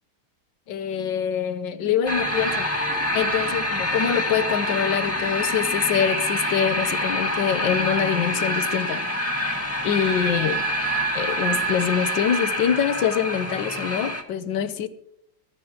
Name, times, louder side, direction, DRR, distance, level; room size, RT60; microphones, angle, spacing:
voice 1, 0.7-2.7 3.1-9.0 9.8-10.7 11.1-14.9, left 8 dB, 70° left, 1.5 m, -25 dB
sound 1, 2.1-14.2, equal, 10° left, 1.5 m, -26 dB
20.0 x 13.0 x 2.9 m
omnidirectional pair, 2.2 m